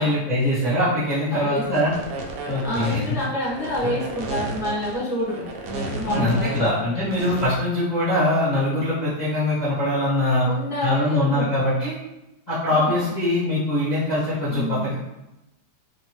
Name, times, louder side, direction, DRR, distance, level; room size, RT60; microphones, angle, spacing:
voice 1, 0.0-1.9 2.5-3.0 3.8-3.9 6.1-10.5 10.8-12.0 12.5-14.9, left 1 dB, 40° left, -11 dB, 0.6 m, -22 dB
voice 2, 1.3-1.9 2.6-7.0 10.4-11.6 12.7-13.1 14.5-14.9, left 1 dB, 5° right, -9 dB, 0.4 m, -29 dB
sound 1, 1.7-7.5, right 2 dB, 85° right, 0.7 m, -33 dB
2.8 x 2.8 x 2.9 m, 0.93 s
omnidirectional pair, 2.1 m